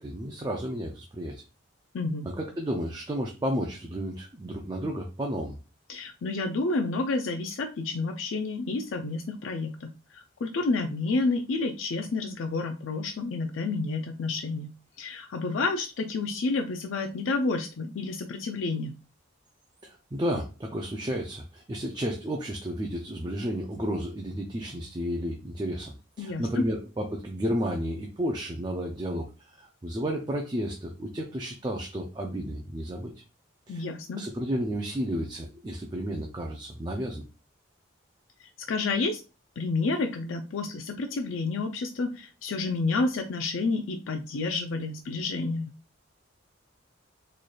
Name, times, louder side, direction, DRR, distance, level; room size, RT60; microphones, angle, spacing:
voice 1, 0.0-1.4 2.3-5.6 19.8-29.3 29.5-33.1 33.7-33.8 34.1-37.2, equal, 20° right, 1 dB, 0.4 m, -32 dB
voice 2, 1.9-2.3 5.9-14.7 15.0-18.9 26.2-26.6 33.7-34.2 38.4-39.2 39.6-45.7, left 3 dB, 80° left, 6 dB, 0.4 m, -30 dB
4.1 x 3.2 x 2.2 m, 0.31 s
head